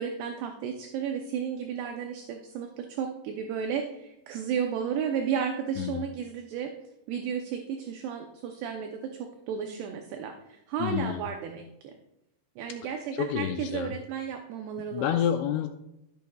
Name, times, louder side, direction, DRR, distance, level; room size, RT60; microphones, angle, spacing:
voice 1, 0.0-6.7 7.1-11.9 12.6-15.2, right 7 dB, 75° right, 4 dB, 2.5 m, -33 dB
voice 2, 5.8-6.1 10.8-11.3 13.1-13.9 14.9-15.7, left 9 dB, 80° left, 6 dB, 2.7 m, -29 dB
14.0 x 10.0 x 2.3 m, 0.86 s
omnidirectional pair, 5.3 m